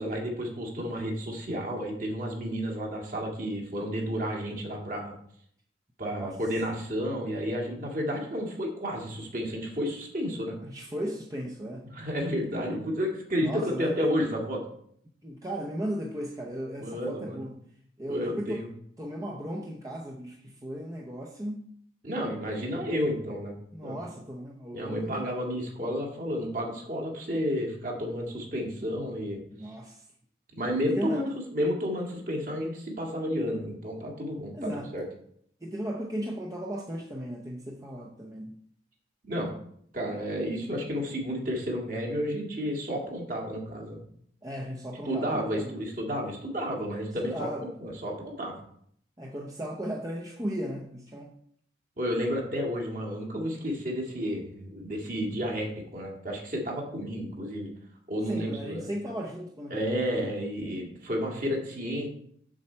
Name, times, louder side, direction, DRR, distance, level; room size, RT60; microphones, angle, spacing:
voice 1, 0.0-5.2 6.0-10.6 11.8-14.6 16.8-17.4 18.1-18.7 22.0-23.6 23.8-24.0 24.7-29.7 30.5-35.0 39.2-39.5 39.9-44.0 45.1-47.5 47.8-48.6 52.0-57.7 58.1-58.9 59.7-62.1, equal, 45° right, 0 dB, 1.9 m, -31 dB
voice 2, 10.6-11.9 13.4-14.1 15.2-17.6 18.0-18.7 19.0-21.7 23.7-25.3 29.5-30.1 30.8-31.2 34.5-35.0 35.6-38.6 44.4-45.8 47.2-47.8 49.2-51.3 58.3-60.3, equal, 20° right, -1 dB, 0.7 m, -36 dB
7.4 x 7.1 x 4.4 m, 0.66 s
head